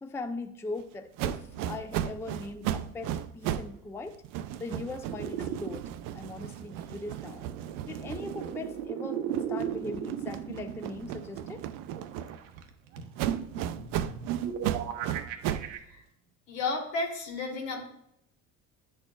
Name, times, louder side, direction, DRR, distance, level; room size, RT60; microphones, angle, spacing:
voice 1, 0.0-4.2 4.6-5.8 6.1-7.4 7.9-9.2 9.5-11.6, left 2 dB, 5° left, 8 dB, 0.4 m, -40 dB
sound 1, 1.2-3.8 4.1-8.9 9.3-12.6 13.2-15.8, right 11 dB, 60° right, 0.5 m, -36 dB
sound 2, 5.1-15.8, right 9 dB, 85° right, 0.7 m, -37 dB
voice 2, 16.5-17.9, left 3 dB, 75° left, 2 dB, 1.7 m, -33 dB
9.4 x 4.4 x 2.3 m, 0.75 s
hypercardioid pair, 70°, 38 cm